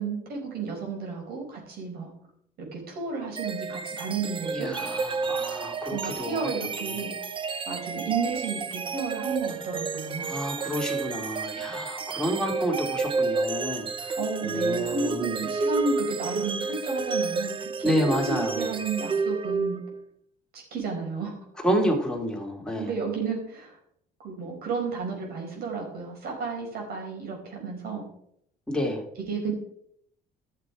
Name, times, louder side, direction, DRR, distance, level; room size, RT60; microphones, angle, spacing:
voice 1, 0.0-2.1 2.7-4.7 5.9-7.1 7.7-10.4 12.1-12.3 14.2-19.8 20.5-21.3 22.8-23.8 24.2-28.0 29.1-29.5, right 4 dB, 65° right, 0 dB, 4.8 m, -32 dB
sound 1, 3.4-20.0, right 4 dB, 30° right, 0.8 m, -31 dB
voice 2, 4.5-6.4 10.3-14.2 14.4-15.4 17.8-18.7 21.6-22.9 28.7-29.0, equal, 5° left, -1 dB, 2.8 m, -29 dB
12.5 x 6.8 x 4.9 m, 0.71 s
cardioid pair, 110°, 17 cm